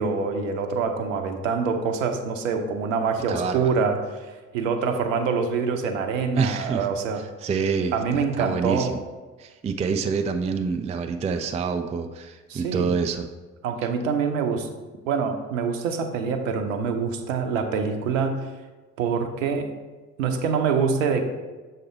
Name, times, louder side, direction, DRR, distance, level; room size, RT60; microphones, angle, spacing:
voice 1, 0.0-7.2 7.9-8.9 12.5-12.9 13.6-14.7 15.0-18.5 19.0-19.7 20.2-21.2, right 5 dB, 80° right, 6 dB, 0.7 m, -25 dB
voice 2, 3.3-3.7 6.3-6.9 7.2-9.0 9.4-13.3, right 5 dB, 20° right, 7 dB, 0.4 m, -27 dB
6.6 x 4.1 x 4.3 m, 1.3 s
hypercardioid pair, 50°, 38 cm